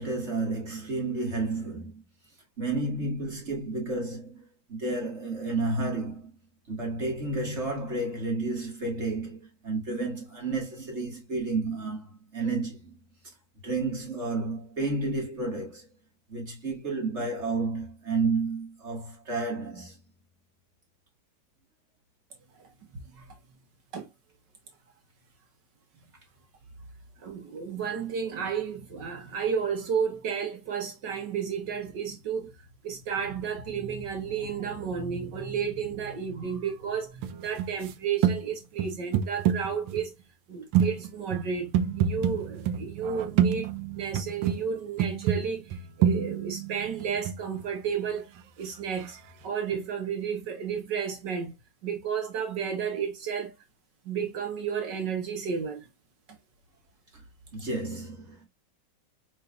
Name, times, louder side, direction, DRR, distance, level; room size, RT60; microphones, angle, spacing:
voice 1, 0.0-2.0 2.6-6.3 6.7-13.0 13.6-15.9 16.3-20.0 57.5-58.5, right 3 dB, 40° right, 1.7 m, -31 dB
voice 2, 27.2-32.5 32.8-40.2 40.5-41.7 42.0-48.3 48.6-49.2 49.4-51.5 51.8-53.5 54.1-55.9, right 7 dB, 70° right, 1.6 m, -32 dB
sound 1, 37.2-37.9 38.2-38.4 38.8-40.0 40.7-44.6 45.0-47.6 49.0-49.1, right 9 dB, 90° right, 1.4 m, -27 dB
5.2 x 3.9 x 2.2 m
omnidirectional pair, 2.1 m